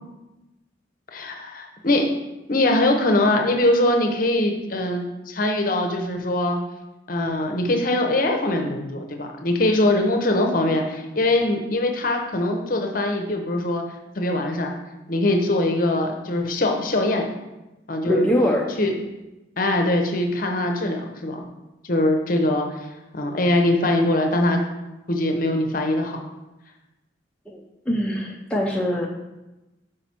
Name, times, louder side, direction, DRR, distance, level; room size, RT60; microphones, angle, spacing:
voice 1, 1.1-2.1 2.5-6.6 7.1-13.8 14.2-14.8 15.1-17.3 17.9-18.3 18.8-18.9 19.6-21.4 21.8-22.9 23.1-24.6 25.1-26.2, left 1 dB, 45° left, 3 dB, 0.8 m, -22 dB
voice 2, 18.1-18.8 27.5-29.1, equal, 5° left, -2 dB, 0.4 m, -23 dB
5.9 x 4.9 x 4.3 m, 1.0 s
head